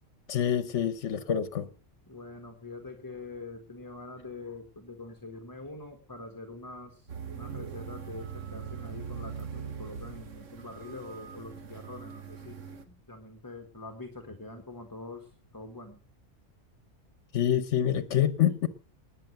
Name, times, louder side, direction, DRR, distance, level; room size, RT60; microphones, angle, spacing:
voice 1, 0.3-1.7 17.3-18.7, left 10 dB, 70° left, 1.2 m, -26 dB
voice 2, 2.1-12.6 12.9-16.0, left 2 dB, 15° left, 1.6 m, -44 dB
sound 1, 7.1-12.8, right 7 dB, 90° right, 1.7 m, -41 dB
20.0 x 6.8 x 7.8 m
omnidirectional pair, 1.3 m